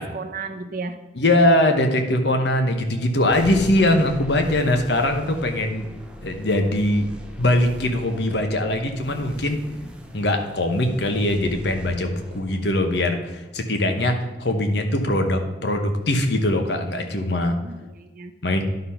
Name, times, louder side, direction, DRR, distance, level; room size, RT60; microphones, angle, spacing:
voice 1, 0.0-1.0 4.5-4.8 17.4-18.3, right 4 dB, 50° right, 5 dB, 0.7 m, -35 dB
voice 2, 1.1-5.9 6.2-7.1 7.4-9.6 10.1-17.6 18.4-18.6, left 1 dB, 65° left, 5 dB, 1.0 m, -21 dB
sound 1, 3.3-14.2, equal, 5° right, 0.7 m, -39 dB
11.5 x 4.0 x 5.6 m, 1.1 s
head